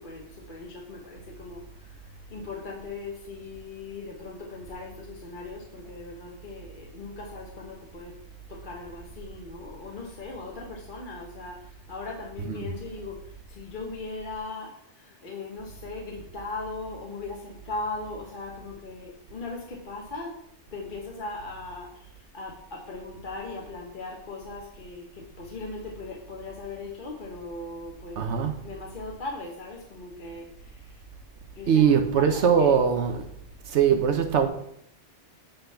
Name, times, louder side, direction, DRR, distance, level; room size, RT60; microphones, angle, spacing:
voice 1, 0.0-8.2 8.5-20.3 20.7-28.2 28.6-31.0 31.5-32.7, left 3 dB, 50° left, 1.2 m, -39 dB
voice 2, 28.2-28.5 31.7-33.3 33.7-34.5, right 7 dB, 80° right, 1.1 m, -21 dB
8.9 x 3.9 x 5.6 m
omnidirectional pair, 1.2 m